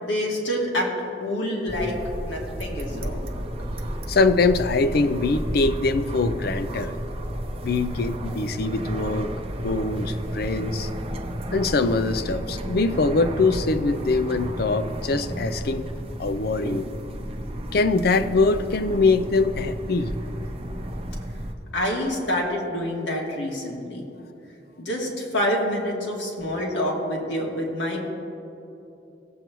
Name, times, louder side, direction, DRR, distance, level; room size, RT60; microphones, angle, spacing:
voice 1, 0.0-0.9 1.2-2.0 2.2-3.3 21.7-24.0 24.8-28.1, left 1 dB, 85° left, -2 dB, 2.0 m, -27 dB
sound 1, 1.7-21.5, equal, 30° right, 0.7 m, -32 dB
voice 2, 4.1-7.0 7.6-9.3 9.6-10.9 11.5-15.9 16.2-16.9 17.7-20.1, left 3 dB, 55° left, 11 dB, 0.5 m, -23 dB
18.0 x 8.0 x 3.1 m, 2.8 s
head